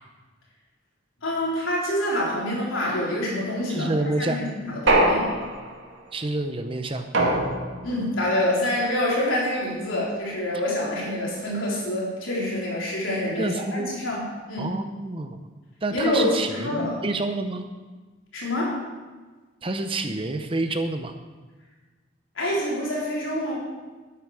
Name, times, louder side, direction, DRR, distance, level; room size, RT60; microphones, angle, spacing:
voice 1, 1.2-3.9 4.3-5.4 7.8-14.2 14.5-14.7 15.9-17.0 18.3-18.8 22.4-23.6, left 1 dB, 85° left, -5 dB, 3.8 m, -26 dB
voice 2, 3.7-4.4 6.1-7.1 13.3-14.0 14.6-15.4 15.8-17.6 19.6-21.2, right 2 dB, 25° right, 7 dB, 0.7 m, -28 dB
sound 1, 4.9-5.9 7.1-8.0, right 1 dB, 70° right, 2.0 m, -22 dB
12.0 x 9.4 x 4.9 m, 1.3 s
head